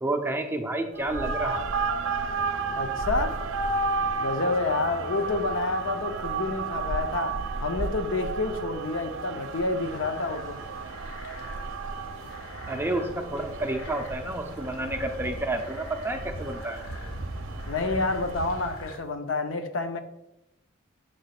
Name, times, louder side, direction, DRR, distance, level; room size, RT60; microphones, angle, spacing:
voice 1, 0.0-1.7 12.7-16.8, right 2 dB, 10° right, 5 dB, 0.5 m, -30 dB
sound 1, 0.9-18.9, right 4 dB, 65° right, 0.6 m, -33 dB
voice 2, 2.7-3.4 4.2-10.6 17.7-20.0, left 3 dB, 65° left, 7 dB, 0.7 m, -29 dB
sound 2, 9.8-19.0, equal, 80° left, 1.5 m, -41 dB
6.6 x 3.1 x 5.8 m, 0.87 s
head